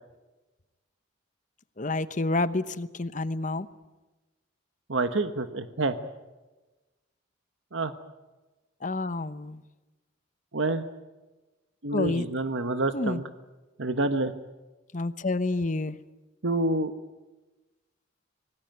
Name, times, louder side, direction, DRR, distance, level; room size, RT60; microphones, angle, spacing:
voice 1, 1.8-3.7 8.8-9.6 11.9-12.2 12.9-13.2 14.9-15.9, left 2 dB, 40° left, 14 dB, 1.0 m, -28 dB
voice 2, 4.9-6.0 7.7-7.9 10.5-10.8 11.8-13.2 13.8-14.3 16.4-16.9, right 2 dB, 80° right, 9 dB, 1.3 m, -27 dB
26.0 x 19.0 x 9.1 m, 1.1 s
head